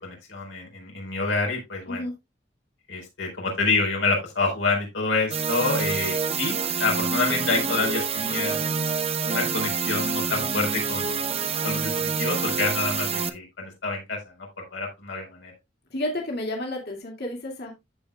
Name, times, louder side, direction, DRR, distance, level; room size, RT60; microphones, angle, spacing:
voice 1, 0.0-2.1 2.9-8.6 9.2-11.1 11.6-14.2 14.6-15.5, left 3 dB, 80° left, 0 dB, 4.4 m, -27 dB
sound 1, 5.3-13.3, right 5 dB, 35° right, 0.8 m, -27 dB
voice 2, 15.9-17.7, left 1 dB, 60° left, 0 dB, 2.4 m, -31 dB
14.5 x 5.4 x 2.3 m, 0.22 s
head